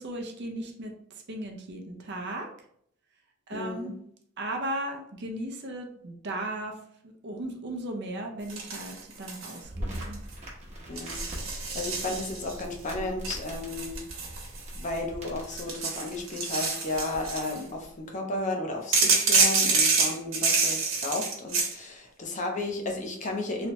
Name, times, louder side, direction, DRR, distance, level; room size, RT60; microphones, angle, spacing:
voice 1, 0.0-2.5 3.5-4.0 4.4-6.8 7.2-10.2, right 1 dB, 55° right, 2 dB, 0.6 m, -36 dB
voice 2, 3.5-3.9 10.9-14.0 14.8-23.7, left 2 dB, 35° left, 2 dB, 0.6 m, -33 dB
sound 1, 8.5-9.6 9.9-10.3 11.0-12.6 13.2-15.0 15.4-17.6 18.9-21.7, right 4 dB, 80° right, 1.1 m, -27 dB
sound 2, 9.6-15.6, equal, 30° right, 1.0 m, -40 dB
3.2 x 2.9 x 3.0 m, 0.67 s
head